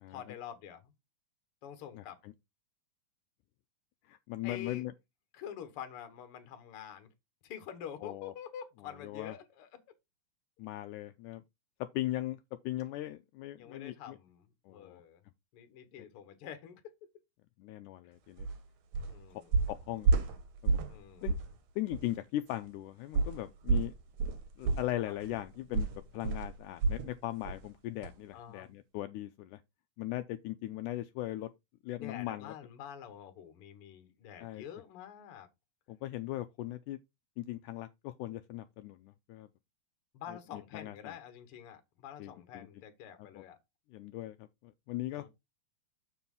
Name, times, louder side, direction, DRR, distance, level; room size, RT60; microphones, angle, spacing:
voice 1, 0.1-0.9 1.6-2.2 4.4-4.8 5.3-7.1 7.4-9.8 13.6-15.2 15.5-16.9 18.0-18.1 19.1-19.7 20.9-21.4 25.0-25.1 28.3-28.7 32.0-35.5 40.1-43.6 45.1-45.3, left 9 dB, 55° left, 1.8 m, -47 dB
voice 2, 1.9-2.3 4.1-4.9 8.0-8.3 9.0-9.3 10.6-11.4 11.8-12.4 12.6-14.2 14.7-15.0 17.6-18.5 19.7-20.2 20.6-20.8 21.2-21.4 21.8-23.9 24.6-25.9 26.1-29.6 30.0-31.5 31.8-32.5 34.4-34.6 35.9-37.0 37.4-39.5 40.3-41.1 42.2-42.7 43.2-43.4 43.9-45.3, left 15 dB, 80° left, 2.0 m, -39 dB
sound 1, 18.4-18.6 18.9-19.2 19.5-21.0 21.3-21.5 21.9-22.0 23.1-27.1 27.5-27.7 28.0-28.1, right 4 dB, 65° right, 2.0 m, -30 dB
7.2 x 4.3 x 5.4 m
omnidirectional pair, 3.8 m